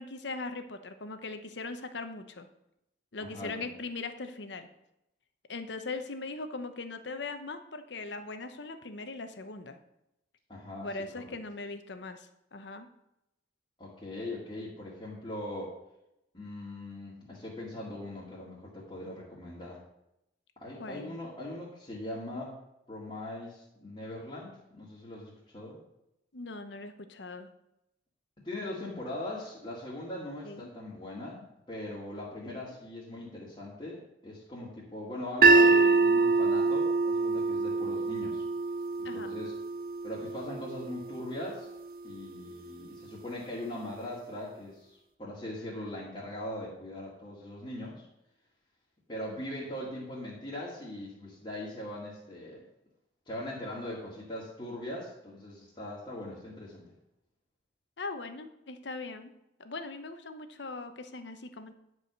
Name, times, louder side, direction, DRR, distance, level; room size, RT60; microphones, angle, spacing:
voice 1, 0.0-2.5 3.1-4.7 5.5-9.8 10.8-12.9 20.8-21.2 26.3-27.5 30.4-30.7 32.5-32.8 39.0-39.4 58.0-59.3 59.6-61.7, left 3 dB, 75° left, 8 dB, 0.9 m, -40 dB
voice 2, 3.2-3.7 10.5-10.9 11.2-11.4 13.8-15.7 16.3-19.8 20.6-22.6 22.9-25.8 28.4-38.4 39.0-39.5 40.0-41.7 42.0-48.1 49.1-52.6 53.3-56.8, left 1 dB, 30° left, -7 dB, 2.1 m, -40 dB
sound 1, 35.4-41.6, right 3 dB, 50° right, 0.6 m, -25 dB
10.0 x 4.9 x 6.7 m, 0.85 s
head